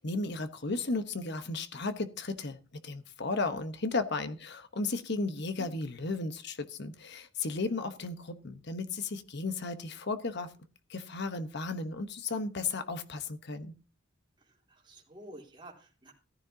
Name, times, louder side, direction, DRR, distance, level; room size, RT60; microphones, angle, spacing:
voice 1, 0.0-10.5 10.9-13.7, left 3 dB, 60° left, 1.1 m, -34 dB
voice 2, 14.7-16.1, right 1 dB, 25° right, 3.6 m, -49 dB
14.0 x 14.0 x 2.8 m
head